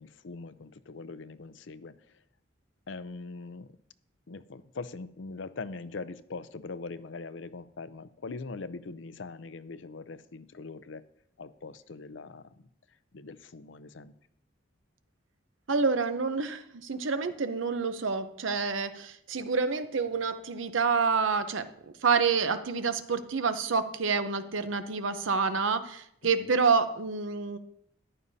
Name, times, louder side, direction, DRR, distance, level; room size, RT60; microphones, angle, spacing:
voice 1, 0.0-1.9 2.9-3.7 4.3-11.0 11.4-12.7 13.1-14.1 26.4-26.5, left 3 dB, 70° left, 14 dB, 0.6 m, -42 dB
voice 2, 15.7-21.7 22.0-27.6, right 5 dB, 80° right, 10 dB, 0.7 m, -28 dB
14.0 x 11.0 x 2.8 m, 0.71 s
head